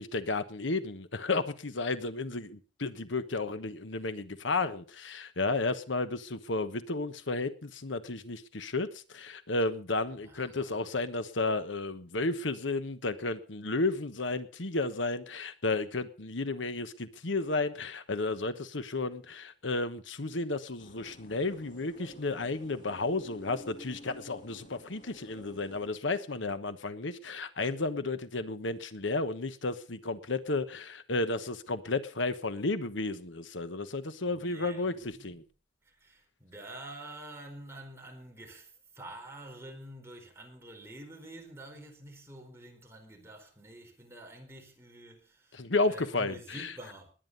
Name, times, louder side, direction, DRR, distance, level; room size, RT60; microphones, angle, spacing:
voice 1, 0.0-35.4 45.5-46.7, left 3 dB, 80° left, 1.2 m, -33 dB
voice 2, 10.2-10.9 34.2-35.4 35.8-47.1, right 1 dB, 15° right, 4.5 m, -48 dB
sound 1, 20.8-25.9, left 1 dB, 40° left, 3.2 m, -52 dB
20.5 x 9.9 x 5.5 m
head